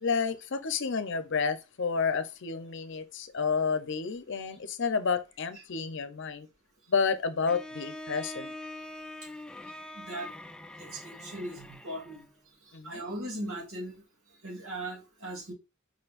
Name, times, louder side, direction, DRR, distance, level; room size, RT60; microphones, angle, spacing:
voice 1, 0.0-6.5 6.9-8.5 12.7-13.0, left 5 dB, 60° left, 0.7 m, -30 dB
Bowed string instrument, 7.5-12.3, left 1 dB, 5° left, 0.3 m, -43 dB
voice 2, 9.9-10.3 10.7-12.2 12.7-14.0 14.4-15.5, right 1 dB, 75° right, 2.4 m, -39 dB
4.8 x 4.4 x 2.5 m
head